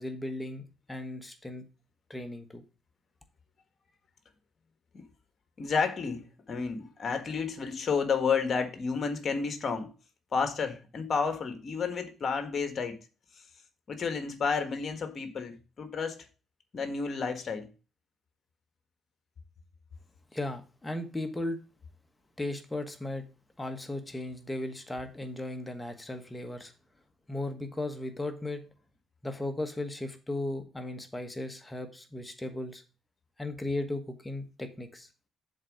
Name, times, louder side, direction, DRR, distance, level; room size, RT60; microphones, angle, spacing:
voice 1, 0.0-1.6 2.1-2.6 20.3-21.6 22.4-23.2 23.6-26.7 27.3-28.6 29.2-32.8 33.4-35.1, left 1 dB, 15° left, 1.3 m, -36 dB
voice 2, 5.6-9.9 10.3-13.0 13.9-16.3 16.7-17.7, left 5 dB, 45° left, 1.5 m, -31 dB
7.4 x 4.0 x 6.3 m
cardioid pair, 90°, 0 cm